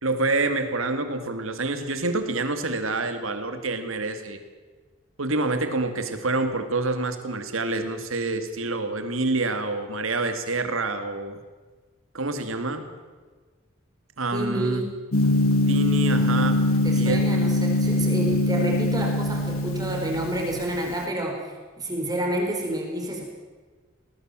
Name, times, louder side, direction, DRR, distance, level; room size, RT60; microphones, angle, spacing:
voice 1, 0.0-4.4 5.2-11.4 12.1-12.9 14.2-14.8 15.7-16.6 16.9-17.2, right 3 dB, 75° right, 8 dB, 2.4 m, -27 dB
voice 2, 14.3-14.9 16.1-16.3 16.8-23.2, right 1 dB, 15° right, 0 dB, 4.5 m, -29 dB
Gong, 15.1-21.0, left 1 dB, 85° left, 2.0 m, -23 dB
20.0 x 19.5 x 7.6 m, 1.4 s
head